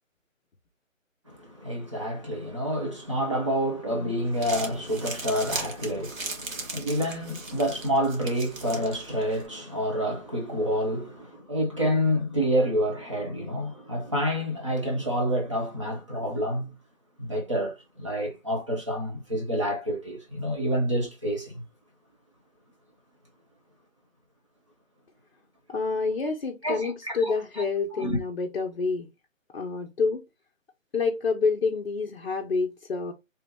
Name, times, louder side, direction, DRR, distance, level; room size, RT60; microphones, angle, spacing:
voice 1, 1.3-16.7 17.2-21.6 26.6-27.3 28.0-28.2, equal, 25° right, 0.7 m, -28 dB
Crumpling crinkling, 4.2-9.5, right 3 dB, 80° right, 1.4 m, -38 dB
voice 2, 25.7-29.1 29.5-30.2 30.9-33.1, left 4 dB, 50° left, 0.6 m, -28 dB
3.4 x 2.9 x 3.2 m
hypercardioid pair, 170°, 40 cm